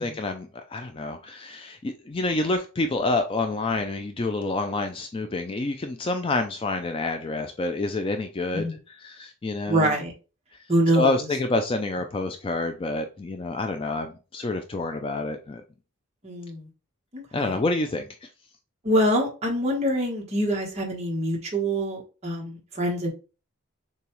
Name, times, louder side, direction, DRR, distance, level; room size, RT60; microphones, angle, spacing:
voice 1, 0.0-8.7 9.0-10.0 10.9-15.6 17.3-18.3, left 2 dB, 25° left, 0.3 m, -28 dB
voice 2, 9.7-10.1 10.7-11.3 16.2-16.7 17.1-17.6 18.8-23.1, equal, 30° right, 1.2 m, -25 dB
6.7 x 2.3 x 3.0 m
head